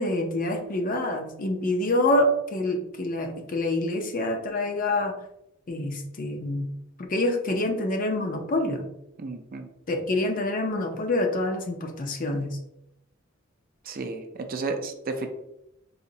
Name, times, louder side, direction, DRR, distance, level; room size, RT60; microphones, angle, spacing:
voice 1, 0.0-5.1 5.7-6.7 7.0-8.9 9.9-12.6, left 1 dB, 40° left, 4 dB, 0.5 m, -26 dB
voice 2, 9.2-9.7 13.8-15.3, right 3 dB, 45° right, 6 dB, 0.4 m, -32 dB
4.1 x 2.9 x 2.7 m, 0.84 s
head